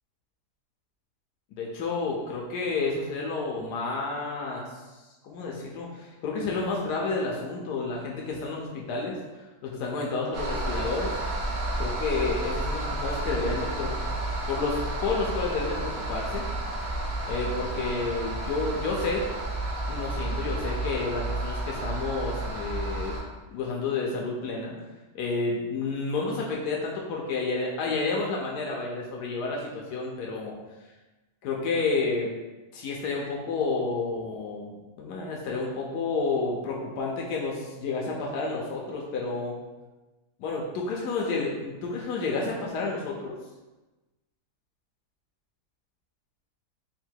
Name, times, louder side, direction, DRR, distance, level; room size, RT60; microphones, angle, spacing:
voice 1, 1.6-4.8 5.2-9.2 9.6-11.1 11.8-13.9 14.5-16.5 17.3-19.3 19.9-23.2 23.5-24.7 25.1-30.6 31.4-32.3 32.7-39.6 40.4-43.3, left 3 dB, 85° left, -2 dB, 1.2 m, -30 dB
sound 1, 10.3-23.2, right 1 dB, 55° right, 0.6 m, -31 dB
3.7 x 2.1 x 4.4 m, 1.1 s
omnidirectional pair, 1.7 m